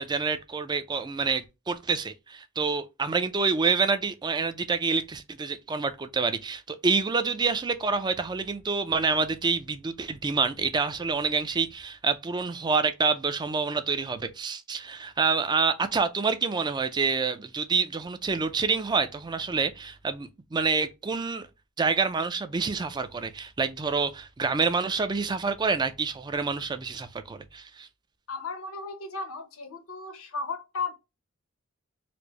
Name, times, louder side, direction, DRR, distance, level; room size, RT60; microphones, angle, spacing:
voice 1, 0.0-21.5 21.8-27.9, right 4 dB, 20° right, 0.4 m, -27 dB
voice 2, 28.3-30.9, left 4 dB, 80° left, 0.8 m, -35 dB
4.3 x 2.0 x 2.8 m
head